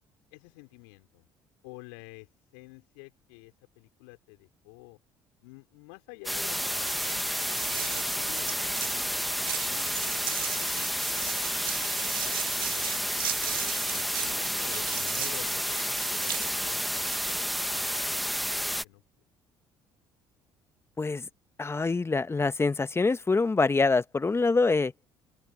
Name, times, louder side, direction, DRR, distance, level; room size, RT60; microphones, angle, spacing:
voice 1, 0.3-1.3 1.6-5.0 5.4-7.0 7.7-9.3 9.6-10.6 11.0-12.8 13.4-17.2 17.7-19.0, left 32 dB, 75° left, 4.6 m, -50 dB
sound 1, 6.3-18.8, equal, ahead, 1.5 m, -30 dB
sound 2, 6.8-17.6, right 11 dB, 90° right, 0.4 m, -38 dB
voice 2, 21.6-24.9, left 3 dB, 20° left, 1.3 m, -25 dB
open air
hypercardioid pair, 55°, 11 cm